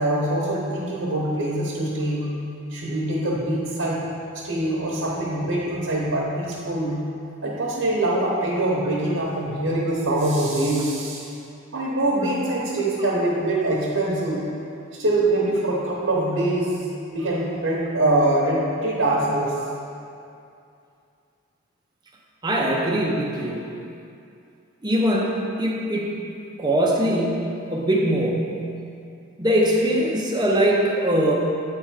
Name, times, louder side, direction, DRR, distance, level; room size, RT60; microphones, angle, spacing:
voice 1, 0.0-2.3 2.7-4.0 4.4-7.0 7.4-11.3 11.7-14.4 14.9-16.8 17.1-19.6, right 1 dB, 70° right, -5 dB, 1.0 m, -23 dB
voice 2, 22.4-23.6 24.8-25.3 25.6-26.2 26.6-28.6 29.4-31.3, right 1 dB, 20° right, -3 dB, 0.7 m, -22 dB
8.5 x 3.4 x 4.9 m, 2.5 s
head